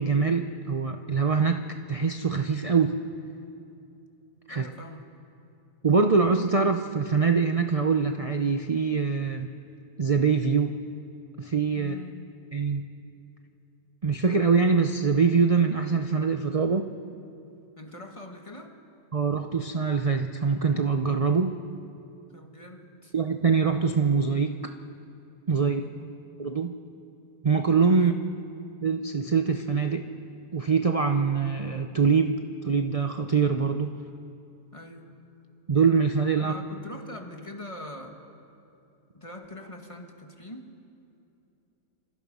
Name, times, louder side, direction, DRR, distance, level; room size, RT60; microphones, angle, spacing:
voice 1, 0.0-1.6 1.9-3.0 4.5-4.7 5.8-9.5 10.0-10.8 11.4-11.9 12.5-12.8 14.0-16.9 19.1-21.6 23.1-24.6 25.5-25.8 26.4-26.7 27.4-28.1 28.8-30.1 30.5-33.9 35.7-36.5, right 5 dB, 45° right, 6 dB, 0.4 m, -24 dB
voice 2, 4.5-5.1 11.8-12.3 17.8-18.8 22.3-23.1 25.6-26.0 27.9-28.2 34.7-35.1 36.4-38.2 39.1-40.8, left 1 dB, 20° left, 3 dB, 1.9 m, -43 dB
28.5 x 26.0 x 5.5 m, 2.8 s
omnidirectional pair, 1.7 m